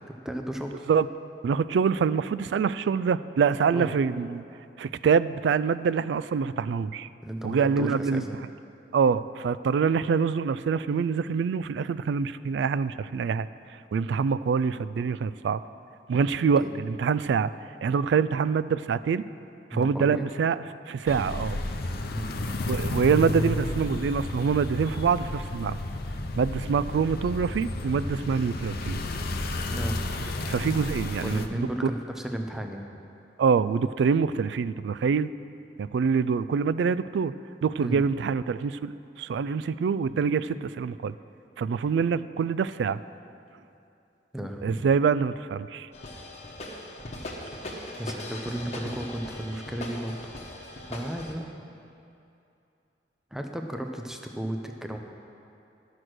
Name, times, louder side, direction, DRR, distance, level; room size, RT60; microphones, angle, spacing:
voice 1, 0.1-0.9 3.7-3.9 7.2-8.4 16.6-16.7 19.7-20.3 22.1-22.4 29.7-30.0 31.2-32.9 37.8-38.0 44.3-44.8 48.0-50.3 50.9-51.5 53.3-55.0, right 1 dB, 5° right, 3 dB, 0.6 m, -34 dB
voice 2, 1.4-4.4 4.8-7.1 7.4-8.2 8.9-13.5 13.9-15.6 16.1-17.5 17.8-19.2 19.7-21.6 22.7-25.8 26.4-29.0 30.5-31.4 31.8-31.9 33.4-35.3 35.8-37.3 37.6-38.9 39.2-41.1 41.6-43.0 44.6-45.9, right 6 dB, 75° right, 16 dB, 0.3 m, -25 dB
sound 1, 21.1-31.5, left 2 dB, 60° left, 0.7 m, -32 dB
sound 2, 45.9-51.3, left 1 dB, 40° left, 1.3 m, -39 dB
12.0 x 6.3 x 6.2 m, 2.7 s
head